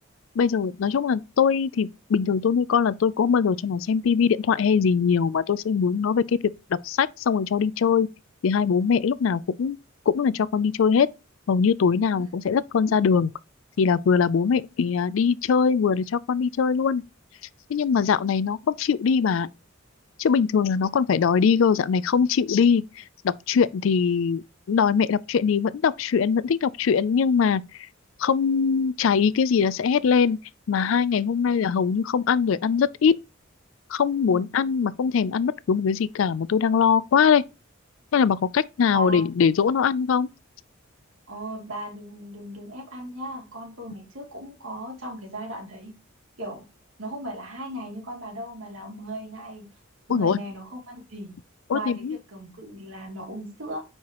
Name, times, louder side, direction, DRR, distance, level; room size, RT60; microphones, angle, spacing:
voice 1, 0.4-6.4 6.8-8.1 8.4-9.8 10.1-11.1 11.5-13.3 13.8-17.0 17.7-19.5 20.2-27.6 28.2-30.4 30.7-33.1 33.9-37.4 38.1-40.3 50.1-50.4 51.7-52.2, left 6 dB, 70° left, 0.4 m, -22 dB
voice 2, 38.9-39.3 41.3-45.9 46.4-46.6 47.0-49.7 50.1-51.3 51.7-53.8, right 1 dB, 75° right, 2.8 m, -37 dB
9.6 x 4.7 x 3.0 m
head